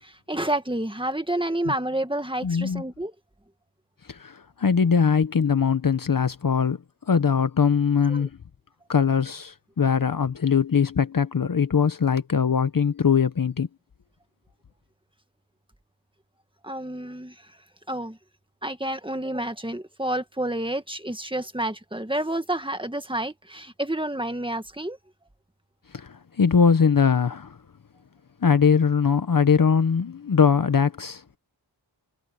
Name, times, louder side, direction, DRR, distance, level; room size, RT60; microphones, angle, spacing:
voice 1, 0.0-3.1 8.1-8.3 16.6-17.4 17.9-18.2 18.6-25.0, right 1 dB, 10° right, 1.9 m, -29 dB
voice 2, 2.4-2.8 4.1-6.8 7.1-8.3 8.9-13.7 25.9-27.6 28.4-31.2, left 6 dB, 50° left, 0.9 m, -21 dB
wide cardioid pair, 85°, 43 cm